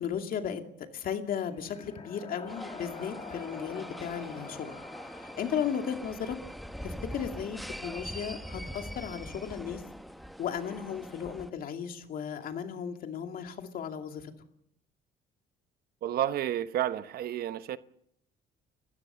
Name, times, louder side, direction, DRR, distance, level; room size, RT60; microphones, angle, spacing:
voice 1, 0.0-4.8 5.2-6.4 6.8-9.8 10.4-14.3, left 8 dB, 60° left, 2.5 m, -35 dB
sound 1, 1.3-9.0, left 5 dB, 35° left, 2.7 m, -49 dB
sound 2, 2.5-11.5, equal, ahead, 0.9 m, -43 dB
voice 2, 16.0-17.8, right 11 dB, 65° right, 0.9 m, -31 dB
29.5 x 15.0 x 6.8 m
cardioid pair, 110°, 17 cm